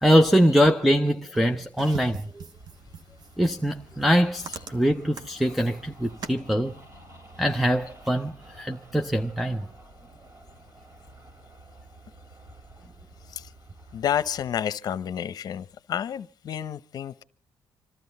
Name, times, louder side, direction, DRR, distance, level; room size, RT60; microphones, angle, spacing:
voice 1, 0.0-2.4 3.4-6.7 7.4-9.7, equal, ahead, 0.7 m, -23 dB
sound 1, 1.3-6.4, right 5 dB, 60° right, 1.3 m, -42 dB
sound 2, 2.5-14.6, right 2 dB, 40° right, 3.6 m, -51 dB
voice 2, 13.9-17.2, left 9 dB, 60° left, 0.8 m, -30 dB
27.0 x 13.0 x 4.1 m
cardioid pair, 90°, 8 cm